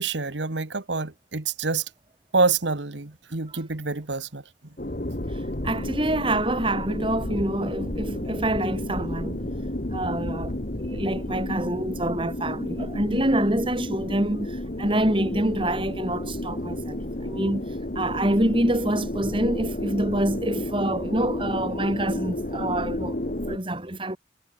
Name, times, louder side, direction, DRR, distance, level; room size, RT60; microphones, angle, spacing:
voice 1, 0.0-1.8 2.3-4.4, right 4 dB, 85° right, 1.7 m, -26 dB
sound 1, 4.8-23.6, left 1 dB, 45° left, 1.7 m, -32 dB
Wind, 4.9-11.7 12.0-12.5, left 1 dB, 65° left, 2.6 m, -37 dB
voice 2, 5.6-9.5 9.9-10.5 10.8-17.7 17.9-24.2, right 1 dB, 30° right, 2.8 m, -26 dB
head